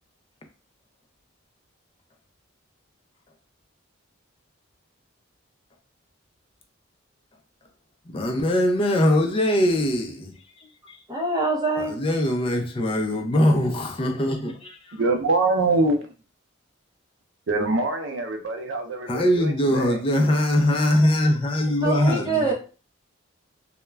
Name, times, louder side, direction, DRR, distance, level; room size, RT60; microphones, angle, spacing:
voice 1, 8.1-11.0 11.8-15.0 19.1-22.5, left 1 dB, 25° left, 0.4 m, -22 dB
voice 2, 11.1-12.0 21.8-22.5, right 3 dB, 20° right, 0.6 m, -24 dB
voice 3, 14.9-16.1 17.5-20.0, right 2 dB, 60° right, 0.5 m, -24 dB
2.3 x 2.1 x 3.2 m
head